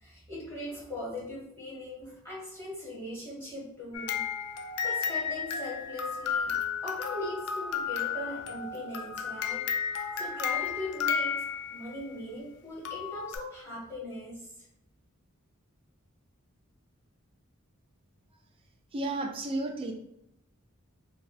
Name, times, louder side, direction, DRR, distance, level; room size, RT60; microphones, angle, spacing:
voice 1, 0.0-4.2 4.8-9.6 10.2-14.5, left 1 dB, 15° left, -8 dB, 1.2 m, -40 dB
sound 1, 3.9-12.0 12.8-13.4, left 7 dB, 85° left, 0.4 m, -33 dB
voice 2, 18.9-19.9, right 2 dB, 25° right, 2 dB, 0.4 m, -32 dB
3.1 x 2.3 x 2.6 m, 0.81 s
head